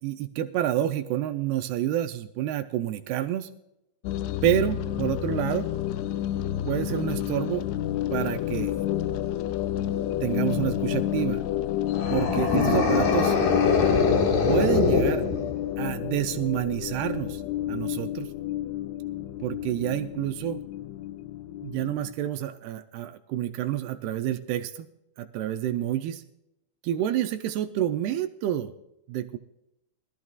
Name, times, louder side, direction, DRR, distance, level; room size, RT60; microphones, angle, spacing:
voice 1, 0.0-3.5 4.4-5.7 6.7-7.7 8.1-8.7 10.2-11.4 12.1-13.4 14.5-15.2 15.8-17.4 17.7-18.3 19.4-20.6 21.6-24.9 25.2-26.2 26.8-28.7 29.1-29.4, right 11 dB, 80° right, 8 dB, 2.4 m, -28 dB
sound 1, 4.0-22.1, left 12 dB, 85° left, 2.6 m, -30 dB
sound 2, 11.9-15.8, left 4 dB, 55° left, 3.0 m, -23 dB
22.0 x 13.5 x 2.4 m, 0.85 s
omnidirectional pair, 5.0 m